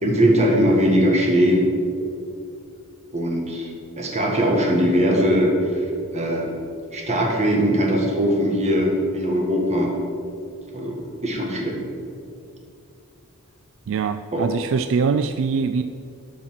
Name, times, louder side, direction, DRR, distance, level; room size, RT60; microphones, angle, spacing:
voice 1, 0.0-1.6 3.1-3.7 4.0-5.8 6.1-6.5 6.9-9.9 10.7-11.8 14.3-14.5, equal, 30° right, 0 dB, 1.8 m, -20 dB
voice 2, 13.9-15.8, right 5 dB, 60° right, 10 dB, 0.3 m, -23 dB
12.5 x 5.7 x 5.8 m, 2.4 s
head